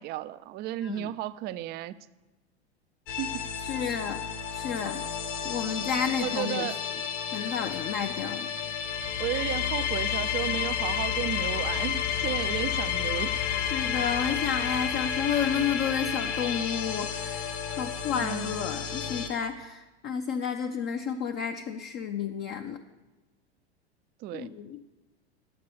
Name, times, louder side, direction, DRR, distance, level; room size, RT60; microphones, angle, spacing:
voice 1, 0.0-2.0 3.2-3.4 3.9-4.0 6.2-6.8 9.2-13.4 18.2-18.6 24.2-24.5, right 13 dB, 30° right, 16 dB, 0.4 m, -33 dB
sound 1, 3.1-19.3, left 8 dB, 55° left, 1.4 m, -31 dB
voice 2, 3.7-4.2 4.5-5.0 5.4-6.7 7.3-8.5 13.7-22.8 24.3-24.8, left 7 dB, 35° left, 6 dB, 0.6 m, -31 dB
11.0 x 7.4 x 6.7 m, 1.1 s
hypercardioid pair, 90°, 32 cm